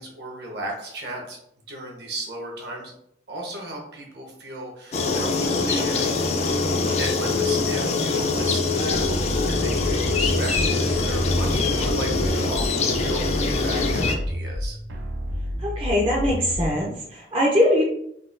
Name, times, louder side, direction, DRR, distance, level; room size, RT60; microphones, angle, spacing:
voice 1, 0.0-1.4 1.7-2.9 3.3-6.7 7.0-14.8, right 1 dB, 65° right, -1 dB, 0.9 m, -35 dB
sound 1, 4.9-14.1, left 3 dB, 35° left, 0.3 m, -23 dB
sound 2, 8.9-16.9, equal, 90° right, 0.5 m, -30 dB
voice 2, 15.6-17.8, left 1 dB, 30° right, -3 dB, 0.5 m, -22 dB
3.9 x 2.2 x 2.5 m, 0.73 s
head